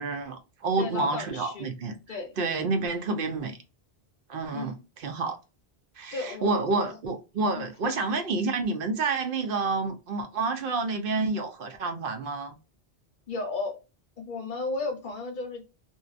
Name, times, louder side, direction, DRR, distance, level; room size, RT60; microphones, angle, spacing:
voice 1, 0.0-1.9 2.4-3.6 4.3-5.4 6.0-12.6, right 3 dB, 60° right, 0.7 m, -29 dB
voice 2, 0.8-1.7 2.1-2.4 4.5-4.8 6.1-6.9 7.5-8.0 13.3-13.8 14.2-15.6, left 3 dB, 55° left, 0.7 m, -34 dB
2.6 x 2.2 x 2.4 m
omnidirectional pair, 1.1 m